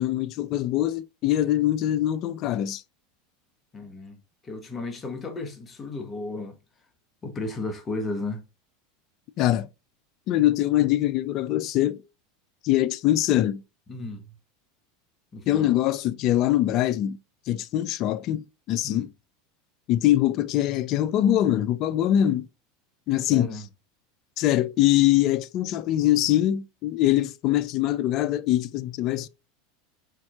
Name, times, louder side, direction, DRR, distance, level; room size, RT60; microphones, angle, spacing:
voice 1, 0.0-2.8 9.4-9.7 10.3-12.0 12.6-13.6 15.5-17.2 17.5-19.1 19.9-22.5 23.1-23.6 24.4-29.3, left 13 dB, 50° left, 0.4 m, -23 dB
voice 2, 3.7-4.2 4.4-6.5 7.2-8.4 13.9-14.3 15.3-15.8 18.8-19.1 23.3-23.6, left 2 dB, 25° left, 1.2 m, -34 dB
4.6 x 4.3 x 2.4 m
hypercardioid pair, 95°, 0 cm